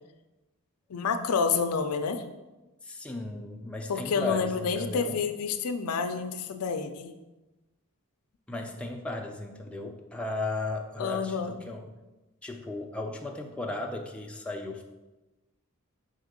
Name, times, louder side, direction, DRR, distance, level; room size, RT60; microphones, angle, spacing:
voice 1, 0.9-2.2 3.9-7.2 11.0-11.6, left 5 dB, 80° left, 8 dB, 0.5 m, -29 dB
voice 2, 2.8-5.2 8.5-11.9 12.4-14.8, left 2 dB, 5° left, 1 dB, 0.4 m, -36 dB
5.5 x 3.6 x 5.1 m, 1.1 s
head